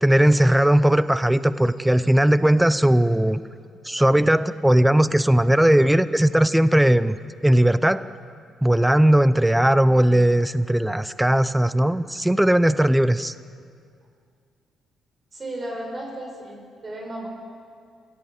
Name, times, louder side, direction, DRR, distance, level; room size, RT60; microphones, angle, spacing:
voice 1, 0.0-3.4 3.8-7.2 7.4-8.1 8.6-13.3, right 1 dB, 5° right, 14 dB, 0.7 m, -18 dB
voice 2, 15.3-17.3, right 1 dB, 35° right, 2 dB, 6.3 m, -34 dB
27.0 x 17.0 x 8.1 m, 2.2 s
cardioid pair, 90°, 0 cm